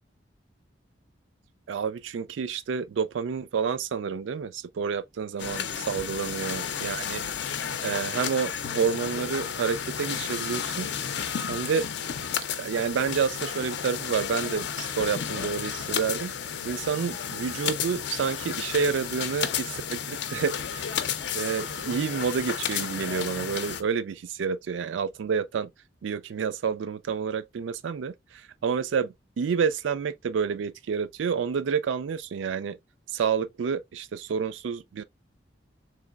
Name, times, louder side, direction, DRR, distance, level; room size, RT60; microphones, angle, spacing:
voice 1, 1.7-7.2 7.8-10.9 11.5-11.9 12.6-16.3 16.6-20.9 21.3-25.7 26.0-32.8 33.1-35.0, right 6 dB, 90° right, 0.4 m, -29 dB
sound 1, 5.4-23.8, left 8 dB, 70° left, 0.5 m, -32 dB
3.8 x 3.2 x 2.3 m
head